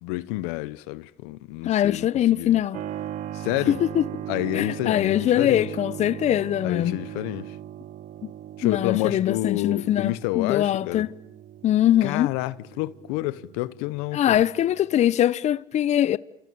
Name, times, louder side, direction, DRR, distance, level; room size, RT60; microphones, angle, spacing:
voice 1, 0.0-2.6 3.3-3.8 4.3-5.7 6.6-7.6 8.6-11.1 12.0-14.4, left 18 dB, 80° left, 1.0 m, -29 dB
voice 2, 1.6-2.8 3.7-4.0 4.5-7.0 8.2-8.3 8.6-11.1 11.6-12.3 14.1-16.2, left 11 dB, 55° left, 1.0 m, -22 dB
Keyboard (musical), 2.7-15.1, right 11 dB, 65° right, 1.8 m, -39 dB
29.5 x 28.0 x 7.0 m
supercardioid pair, 70°, 14 cm